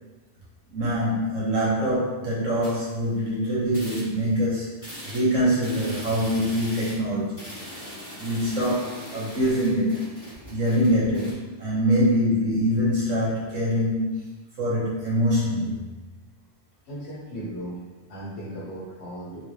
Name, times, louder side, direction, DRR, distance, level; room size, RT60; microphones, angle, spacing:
voice 1, 0.7-4.7 5.0-7.4 8.2-10.1 10.5-14.2 14.6-15.8, equal, 90° right, -8 dB, 1.6 m, -24 dB
sound 1, 2.6-3.3 3.7-4.4 4.8-11.3, equal, 15° left, 1.2 m, -40 dB
voice 2, 16.9-19.4, right 1 dB, 65° left, -4 dB, 1.1 m, -37 dB
3.7 x 2.7 x 3.1 m, 1.2 s
omnidirectional pair, 1.3 m